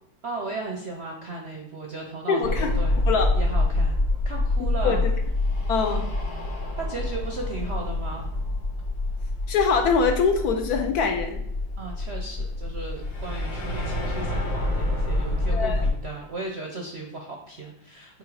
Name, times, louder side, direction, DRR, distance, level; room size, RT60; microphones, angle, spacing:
voice 1, 0.2-3.0 3.3-4.0 4.3-5.0 5.8-6.0 6.8-8.3 11.8-18.2, right 3 dB, 60° right, 1 dB, 0.6 m, -36 dB
voice 2, 2.3-2.7 3.1-3.3 4.8-5.0 5.7-6.0 9.5-11.4 15.5-15.8, left 5 dB, 65° left, 5 dB, 1.0 m, -23 dB
sound 1, 2.4-15.9, left 2 dB, 90° left, 2.2 m, -27 dB
8.0 x 2.9 x 4.7 m, 0.74 s
omnidirectional pair, 2.0 m